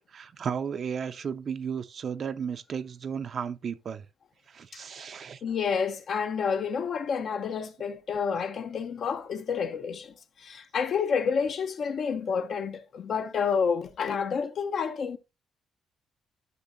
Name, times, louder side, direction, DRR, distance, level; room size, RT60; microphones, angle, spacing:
voice 1, 0.1-4.1 4.5-5.4, right 7 dB, 50° right, 0.6 m, -34 dB
voice 2, 5.4-15.2, left 6 dB, 60° left, 1.0 m, -29 dB
12.0 x 5.7 x 2.7 m
cardioid pair, 90°, 0 cm